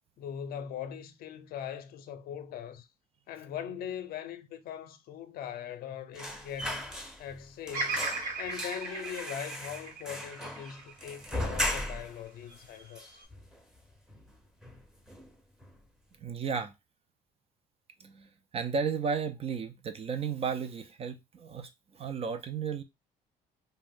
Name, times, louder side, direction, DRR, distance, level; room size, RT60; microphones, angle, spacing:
voice 1, 0.2-2.9 3.3-6.9 7.2-8.1 8.4-13.2, left 9 dB, 65° left, 0.5 m, -41 dB
sound 1, 6.1-7.4 7.7-12.2 12.6-12.7 13.0-13.8 14.1-14.3 14.6-15.3 15.6-15.8, left 1 dB, 5° right, 0.7 m, -37 dB
Bird vocalization bird call bird song, 7.7-11.9 12.5-13.2, right 3 dB, 55° right, 1.0 m, -37 dB
voice 2, 16.2-16.7 18.0-22.8, right 6 dB, 35° right, 0.4 m, -34 dB
2.5 x 2.1 x 3.5 m
cardioid pair, 110°, 17 cm